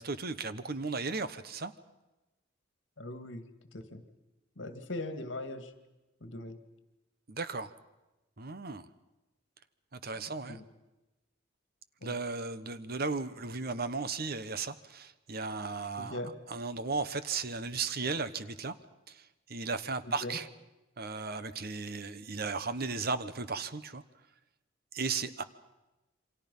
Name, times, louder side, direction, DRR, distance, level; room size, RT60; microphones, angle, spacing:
voice 1, 0.0-1.7 7.3-7.7 8.4-8.9 9.9-10.6 12.0-16.2 16.5-18.7 19.1-19.2 19.5-20.5 21.0-24.0 24.9-25.4, right 4 dB, 50° right, 13 dB, 1.1 m, -35 dB
voice 2, 3.0-3.4 3.7-4.0 4.6-5.7 6.2-6.6 10.2-10.6 12.0-12.2 16.0-16.3 20.0-20.4, left 1 dB, 70° left, 8 dB, 2.1 m, -40 dB
28.0 x 25.0 x 5.5 m, 1.0 s
head